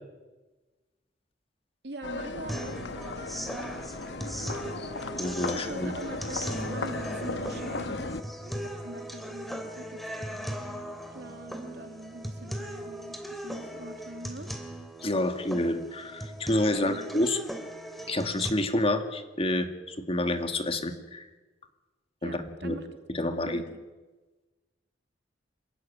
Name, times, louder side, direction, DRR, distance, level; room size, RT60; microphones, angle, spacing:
voice 1, 1.8-3.6 5.5-8.0 8.6-10.6 11.1-14.5 16.8-17.1 22.2-23.8, right 2 dB, 65° right, 6 dB, 2.6 m, -43 dB
sound 1, 2.0-8.2, left 3 dB, 70° left, 1.2 m, -36 dB
sound 2, 2.5-18.5, equal, ahead, 2.7 m, -38 dB
voice 2, 5.2-5.9 15.0-17.4 18.1-21.3 22.2-22.8 23.1-23.6, left 1 dB, 35° left, 7 dB, 2.1 m, -28 dB
27.0 x 15.0 x 9.9 m, 1.2 s
head